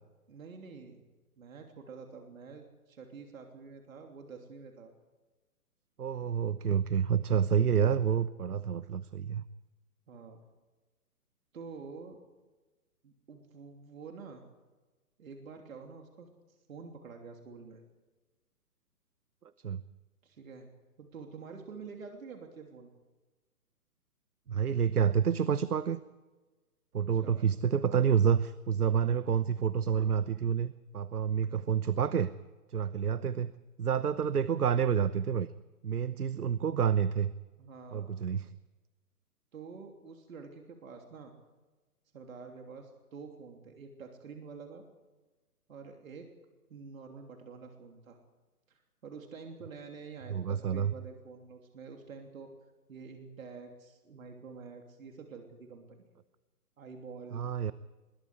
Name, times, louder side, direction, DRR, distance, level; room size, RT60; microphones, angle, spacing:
voice 1, 0.3-1.0 1.4-4.9 10.1-10.4 11.5-12.2 13.0-14.4 15.2-16.3 16.7-17.8 20.2-20.7 21.0-22.9 27.0-27.4 37.6-38.1 39.5-41.3 42.1-44.8 45.7-46.3 46.7-48.2 48.7-52.5 52.9-56.1 56.8-57.5, right 5 dB, 60° right, 3 dB, 3.2 m, -48 dB
voice 2, 6.0-9.4 19.6-19.8 24.5-26.0 26.9-32.3 32.7-33.5 33.8-35.5 35.8-37.3 37.9-38.5 50.3-50.9 57.3-57.7, right 7 dB, 75° right, 15 dB, 1.0 m, -28 dB
25.0 x 22.5 x 4.9 m, 1.2 s
figure-of-eight pair, 135°, 46 cm